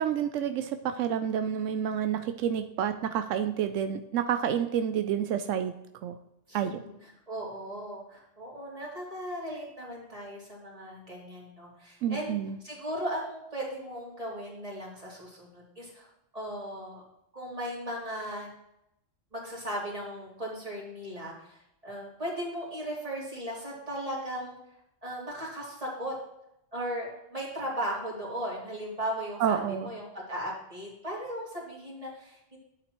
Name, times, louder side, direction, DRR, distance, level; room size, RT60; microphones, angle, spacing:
voice 1, 0.0-5.7 6.0-6.2 6.5-6.8 12.0-12.6 29.4-29.9, right 9 dB, 90° right, 8 dB, 0.9 m, -29 dB
voice 2, 6.5-16.1 16.3-17.0 17.3-18.5 19.3-24.5 25.0-26.1 26.7-32.6, equal, 30° right, -5 dB, 3.0 m, -37 dB
11.5 x 8.1 x 3.0 m, 0.81 s
omnidirectional pair, 1.2 m